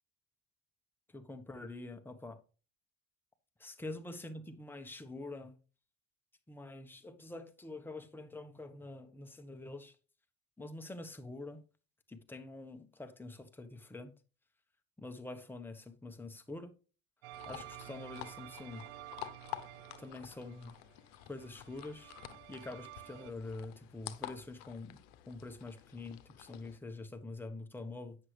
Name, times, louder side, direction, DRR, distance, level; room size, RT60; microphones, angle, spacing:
voice 1, 1.1-2.4 3.6-5.5 6.5-9.9 10.6-11.6 12.1-14.1 15.0-16.7 17.5-18.8 20.0-20.7 21.3-22.1 22.5-25.0 25.3-28.2, left 2 dB, 5° left, 1.1 m, -46 dB
sound 1, 17.2-23.3, right 16 dB, 85° right, 0.6 m, -51 dB
sound 2, 17.3-26.8, left 13 dB, 80° left, 0.8 m, -50 dB
9.4 x 6.4 x 3.3 m
supercardioid pair, 75°, 31 cm